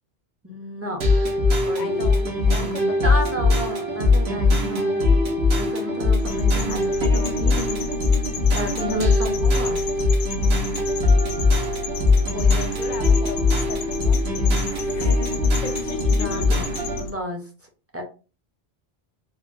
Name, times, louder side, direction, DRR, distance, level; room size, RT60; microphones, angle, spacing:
voice 1, 0.4-1.1 1.6-2.3 2.5-2.7 3.0-5.1 5.5-10.1 16.0-16.7 17.0-17.5 17.9-18.0, left 1 dB, 15° right, 2 dB, 0.5 m, -32 dB
sound 1, 1.0-17.0, left 3 dB, 85° right, 1.0 m, -21 dB
voice 2, 1.7-2.2 2.5-3.7 12.3-15.4 15.6-16.6, left 6 dB, 55° left, 7 dB, 0.6 m, -37 dB
sound 2, 6.2-17.1, left 3 dB, 85° left, 0.9 m, -32 dB
3.5 x 2.1 x 2.5 m, 0.34 s
omnidirectional pair, 1.1 m